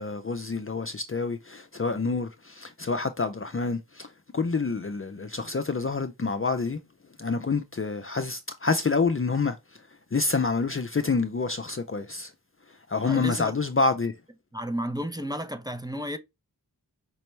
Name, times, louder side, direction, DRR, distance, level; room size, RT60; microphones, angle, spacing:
voice 1, 0.0-6.8 7.2-9.6 10.1-12.3 12.9-14.1, left 4 dB, 35° left, 0.5 m, -27 dB
voice 2, 13.0-13.5 14.5-16.2, equal, 10° right, 0.7 m, -32 dB
5.3 x 2.9 x 3.2 m
wide cardioid pair, 45°, 40 cm